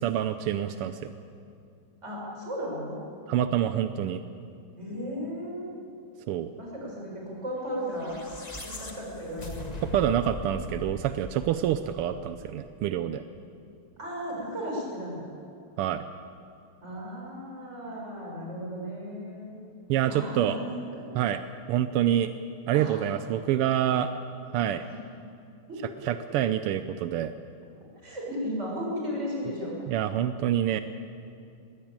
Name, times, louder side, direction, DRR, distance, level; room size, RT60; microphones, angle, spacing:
voice 1, 0.0-1.1 3.3-4.2 6.3-6.5 9.9-13.2 15.8-16.0 19.9-20.6 21.2-21.4 21.7-22.3 22.7-24.1 24.5-24.8 26.0-27.3 29.9-30.8, right 11 dB, 85° right, 10 dB, 1.6 m, -26 dB
voice 2, 2.0-3.0 4.8-5.7 6.6-8.2 8.6-9.8 14.0-15.3 16.8-19.5 20.1-20.7 20.9-21.0 22.7-23.0 24.9-25.0 25.7-25.8 28.0-29.7, equal, 30° right, -3 dB, 6.4 m, -35 dB
sound 1, 7.8-12.3, left 2 dB, 20° left, 1.5 m, -40 dB
21.0 x 16.5 x 8.8 m, 2.5 s
omnidirectional pair, 2.4 m